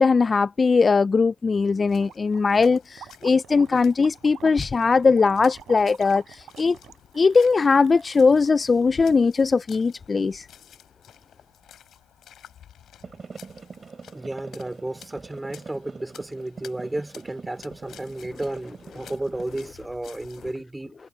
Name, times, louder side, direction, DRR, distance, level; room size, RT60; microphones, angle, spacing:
voice 1, 0.0-6.8 7.2-10.5, left 4 dB, 35° left, 0.3 m, -20 dB
sound 1, 1.7-20.6, left 10 dB, 70° left, 7.1 m, -52 dB
Gurgling, 2.0-8.9, right 10 dB, 70° right, 3.9 m, -47 dB
sound 2, 13.0-19.7, right 5 dB, 35° right, 5.9 m, -43 dB
voice 2, 14.1-20.9, right 1 dB, 10° right, 4.5 m, -33 dB
cardioid pair, 90°, 0 cm